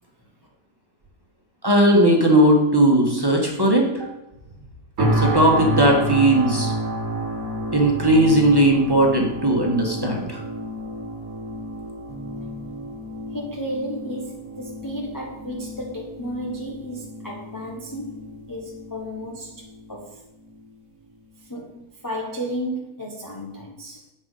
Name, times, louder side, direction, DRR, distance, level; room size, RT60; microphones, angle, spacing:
voice 1, 1.6-4.1 5.0-6.7 7.7-10.4, right 1 dB, 15° right, 0 dB, 1.5 m, -18 dB
sound 1, 5.0-20.0 20.5-20.7, right 1 dB, 60° right, 2.0 m, -30 dB
voice 2, 12.1-12.9 13.3-20.2 21.4-24.1, equal, 15° left, -2 dB, 0.8 m, -33 dB
7.9 x 6.0 x 5.6 m, 0.95 s
omnidirectional pair, 1.7 m